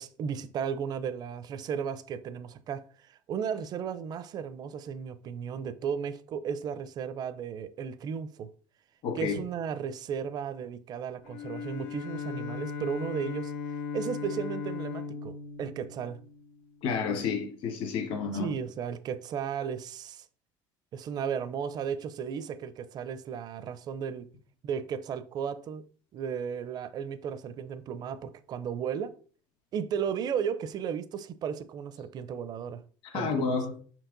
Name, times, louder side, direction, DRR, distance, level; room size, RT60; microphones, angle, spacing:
voice 1, 0.0-8.5 9.1-13.5 13.9-15.3 15.6-16.2 18.3-20.3 20.9-24.3 24.6-25.9 26.1-29.1 29.7-32.8 33.1-33.5, right 7 dB, 40° right, 0.5 m, -34 dB
voice 2, 9.0-9.3 16.8-18.5 33.1-33.7, left 5 dB, 60° left, 1.4 m, -30 dB
Bowed string instrument, 11.2-16.8, left 5 dB, 80° left, 0.8 m, -37 dB
5.7 x 4.6 x 3.9 m
cardioid pair, 140°, 10 cm